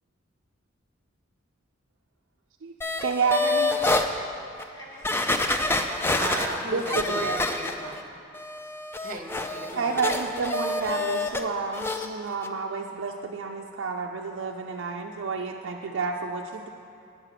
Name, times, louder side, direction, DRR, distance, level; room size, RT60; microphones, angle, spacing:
sound 1, 2.8-4.1 4.6-4.7 5.0-8.0 8.3-11.4 11.7-12.1 12.4-12.5, left 2 dB, 10° left, 0.3 m, -27 dB
voice 1, 3.0-3.8 6.7-7.4 9.7-16.7, right 5 dB, 60° right, 0 dB, 0.4 m, -30 dB
voice 2, 3.8-4.4 4.7-6.2 9.6-9.7 12.0-12.1, left 1 dB, 65° left, -3 dB, 1.7 m, -47 dB
voice 3, 6.2-8.0 9.0-10.1 15.8-16.0, right 2 dB, 40° right, 4 dB, 0.8 m, -36 dB
8.8 x 7.9 x 5.8 m, 2.5 s
head